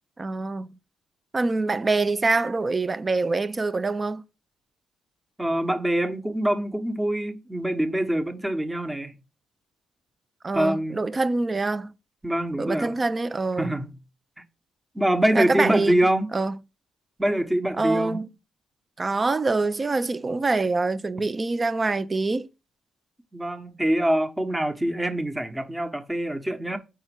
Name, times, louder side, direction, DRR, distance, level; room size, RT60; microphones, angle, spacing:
voice 1, 0.2-0.7 1.3-4.2 10.4-11.9 12.6-13.8 15.3-16.0 16.3-16.6 17.8-18.3 19.0-22.5, right 3 dB, 25° right, 0.7 m, -25 dB
voice 2, 5.4-9.2 10.5-11.0 12.2-12.9 13.6-13.9 14.9-16.3 17.2-18.2 23.3-26.8, right 1 dB, 10° right, 1.2 m, -24 dB
6.1 x 4.3 x 5.9 m
cardioid pair, 90°, 0 cm